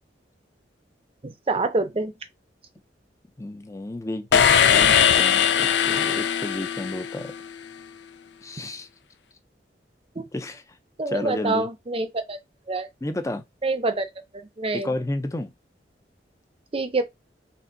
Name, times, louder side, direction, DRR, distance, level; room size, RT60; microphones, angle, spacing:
voice 1, 1.2-2.1 10.2-10.3 11.0-12.4 12.7-12.9 13.6-14.1 14.3-14.9 16.7-17.0, right 3 dB, 35° right, 0.6 m, -26 dB
voice 2, 3.4-7.3 8.4-8.9 10.3-10.6 11.1-11.7 13.0-13.4 14.7-15.5, left 1 dB, 15° left, 0.5 m, -31 dB
sound 1, 4.3-7.5, left 8 dB, 70° left, 0.4 m, -20 dB
4.2 x 3.5 x 2.6 m
head